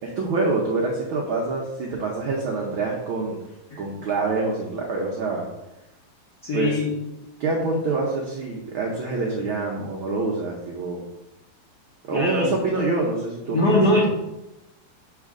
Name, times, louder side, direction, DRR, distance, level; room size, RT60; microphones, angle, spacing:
voice 1, 0.0-3.4 3.8-5.5 6.5-6.8 7.4-11.0 12.0-14.0, right 3 dB, 90° right, -1 dB, 1.1 m, -26 dB
voice 2, 6.4-6.9 12.1-12.5 13.5-14.0, left 1 dB, 80° left, -4 dB, 0.9 m, -21 dB
6.5 x 4.2 x 3.6 m, 0.95 s
omnidirectional pair, 3.3 m